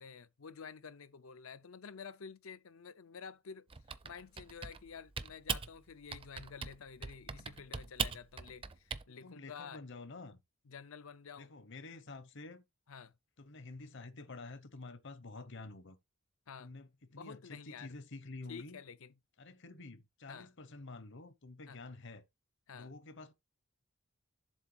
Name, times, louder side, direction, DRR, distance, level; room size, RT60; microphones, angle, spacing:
voice 1, 0.0-3.7 4.0-9.8 10.7-11.5 12.9-13.1 16.5-16.7 17.1-18.0 18.5-19.1 20.3-20.5 21.7-21.8 22.7-22.9, left 6 dB, 80° left, 0.6 m, -50 dB
Typing, 3.7-4.9 5.2-5.7 6.1-6.8 7.0-9.0, right 6 dB, 25° right, 0.5 m, -39 dB
voice 2, 9.1-10.4 11.4-12.6 13.4-16.0 16.6-18.8 19.4-22.2 22.7-23.3, left 3 dB, 60° left, 0.9 m, -49 dB
7.4 x 3.3 x 6.2 m
head